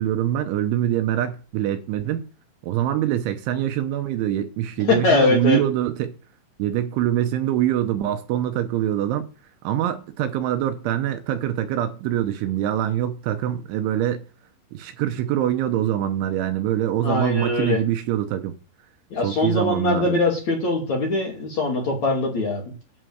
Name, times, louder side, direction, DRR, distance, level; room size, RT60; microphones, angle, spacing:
voice 1, 0.0-2.3 2.6-6.2 6.6-9.3 9.6-14.2 14.7-18.5 19.2-20.2, right 12 dB, 75° right, 3.1 m, -24 dB
voice 2, 4.9-5.6 17.0-17.8 19.1-22.6, left 3 dB, 45° left, 3.1 m, -22 dB
11.5 x 5.6 x 7.9 m
omnidirectional pair, 5.8 m